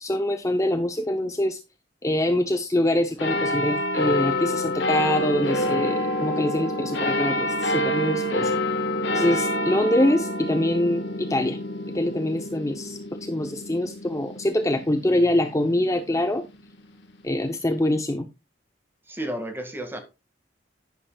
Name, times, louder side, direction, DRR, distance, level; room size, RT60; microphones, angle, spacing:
voice 1, 0.0-1.6 2.0-8.6 9.1-11.6 11.9-16.4 17.2-18.3, left 1 dB, 20° left, 0.7 m, -24 dB
sound 1, 3.2-16.1 16.7-16.8, left 1 dB, 75° left, 1.5 m, -27 dB
voice 2, 19.1-20.0, right 1 dB, 15° right, 1.9 m, -32 dB
11.0 x 9.9 x 2.3 m
head